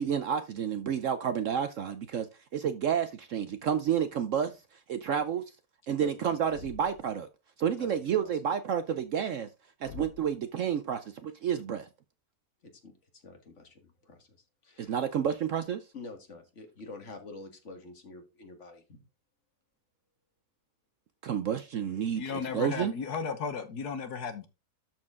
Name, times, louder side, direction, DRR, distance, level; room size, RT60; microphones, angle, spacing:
voice 1, 0.0-2.3 2.5-4.5 4.9-5.4 5.9-7.3 7.6-9.5 9.8-11.9 14.8-15.8 21.2-22.9, right 8 dB, 65° right, 0.8 m, -30 dB
voice 2, 6.0-6.6 7.8-8.3 12.8-14.4 14.6-15.0 15.9-19.0, left 3 dB, 45° left, 2.0 m, -47 dB
Thump thud, 6.5-7.1 9.8-10.4, left 8 dB, 85° left, 1.4 m, -47 dB
voice 3, 22.2-24.5, left 5 dB, 70° left, 1.6 m, -35 dB
12.5 x 4.5 x 3.6 m
omnidirectional pair, 1.8 m